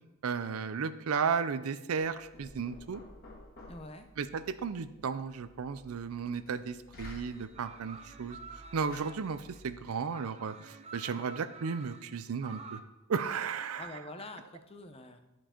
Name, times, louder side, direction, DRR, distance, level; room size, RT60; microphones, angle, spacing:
voice 1, 0.2-3.0 4.2-8.4 8.7-12.8 13.1-13.9, right 6 dB, 90° right, 12 dB, 0.5 m, -34 dB
Knock, 2.0-9.9, left 1 dB, 45° left, 1.8 m, -53 dB
voice 2, 3.7-4.1 13.8-15.2, left 2 dB, 30° left, 7 dB, 0.7 m, -46 dB
sound 1, 7.3-12.8, right 4 dB, 30° right, 0.5 m, -50 dB
11.5 x 4.6 x 4.4 m, 0.99 s
head